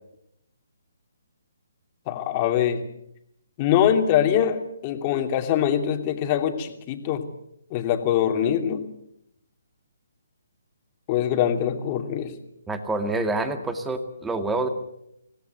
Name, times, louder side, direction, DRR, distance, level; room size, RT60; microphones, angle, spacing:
voice 1, 2.1-2.8 3.6-7.2 7.7-8.8 11.1-12.3, left 9 dB, 30° left, 5 dB, 2.8 m, -23 dB
voice 2, 12.7-14.7, right 2 dB, 10° right, 8 dB, 2.1 m, -27 dB
26.0 x 17.5 x 8.2 m, 0.78 s
figure-of-eight pair, 145°, 0 cm